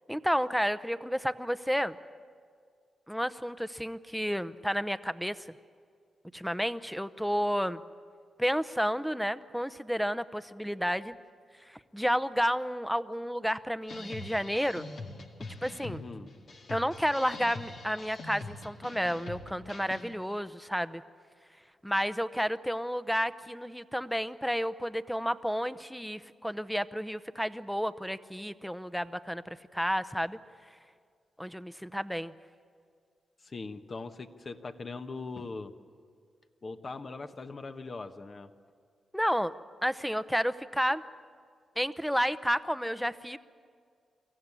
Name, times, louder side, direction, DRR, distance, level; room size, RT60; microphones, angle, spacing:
voice 1, 0.1-2.0 3.1-5.4 6.3-7.8 8.4-11.1 11.7-14.9 15.6-16.0 16.7-21.0 21.8-30.4 31.4-32.3 39.1-39.5 39.8-41.0 41.8-43.4, equal, ahead, 14 dB, 0.8 m, -31 dB
sound 1, 13.9-20.1, left 3 dB, 65° left, 2.1 m, -44 dB
voice 2, 15.8-16.3 33.4-35.7 36.6-38.5, left 3 dB, 45° left, 7 dB, 1.2 m, -41 dB
23.5 x 15.0 x 9.8 m, 2.1 s
cardioid pair, 60°, 0 cm